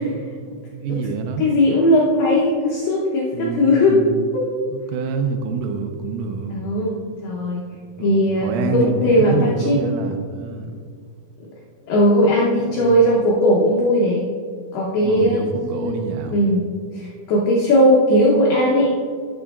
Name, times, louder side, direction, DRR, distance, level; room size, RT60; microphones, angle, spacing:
voice 1, 0.7-1.5 3.3-4.1 4.7-6.6 7.7-10.7 12.7-13.0 15.0-16.5, right 5 dB, 85° right, 5 dB, 3.3 m, -27 dB
voice 2, 1.4-4.0 4.3-4.5 6.5-7.6 8.0-9.8 11.9-14.2 14.7-16.6 16.9-18.9, equal, 90° left, -4 dB, 2.2 m, -18 dB
12.5 x 7.4 x 2.4 m, 2.2 s
omnidirectional pair, 5.8 m